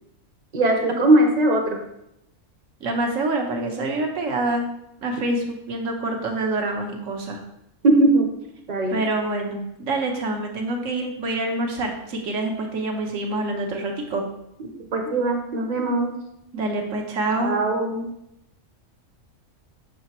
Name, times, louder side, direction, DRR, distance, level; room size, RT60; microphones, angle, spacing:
voice 1, 0.5-1.8 7.8-8.3 8.7-9.0 14.9-16.1 17.4-18.1, right 2 dB, 35° right, 3 dB, 0.9 m, -20 dB
voice 2, 2.8-4.7 5.0-7.4 8.9-14.3 16.5-17.5, right 2 dB, 70° right, 2 dB, 1.3 m, -26 dB
6.5 x 5.0 x 3.0 m, 0.81 s
omnidirectional pair, 1.4 m